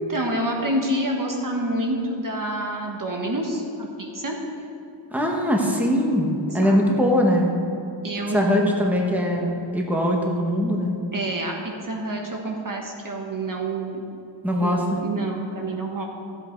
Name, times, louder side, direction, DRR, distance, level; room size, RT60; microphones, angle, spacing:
voice 1, 0.0-4.4 6.5-6.8 8.0-8.7 11.1-14.1 14.6-16.1, right 1 dB, 45° right, 1 dB, 1.4 m, -28 dB
voice 2, 5.1-6.3 6.5-7.6 8.3-11.0 14.4-14.8, equal, 5° right, 0 dB, 1.5 m, -21 dB
14.0 x 8.0 x 4.6 m, 2.9 s
wide cardioid pair, 100°, 47 cm